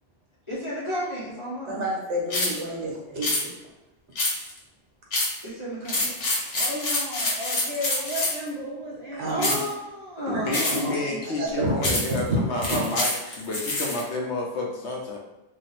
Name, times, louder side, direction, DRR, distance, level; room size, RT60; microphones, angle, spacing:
voice 1, 0.5-1.8 5.4-6.6 9.3-11.2, equal, 25° left, -8 dB, 0.9 m, -33 dB
voice 2, 1.7-3.5 9.1-9.6 10.3-10.4 10.7-12.0 12.6-12.8, right 1 dB, 60° right, -3 dB, 1.2 m, -30 dB
sound 1, 2.3-2.6 3.2-3.4 4.2-4.6 5.1-5.4 5.8-8.5 9.4-9.7 10.5-10.9 11.8-12.2 12.6-14.0, left 2 dB, 90° left, 1.5 m, -26 dB
voice 3, 6.5-9.3, equal, 45° right, -6 dB, 0.5 m, -34 dB
voice 4, 10.3-15.2, left 2 dB, 65° left, -1 dB, 0.8 m, -30 dB
2.9 x 2.4 x 4.1 m, 1.0 s
omnidirectional pair, 1.3 m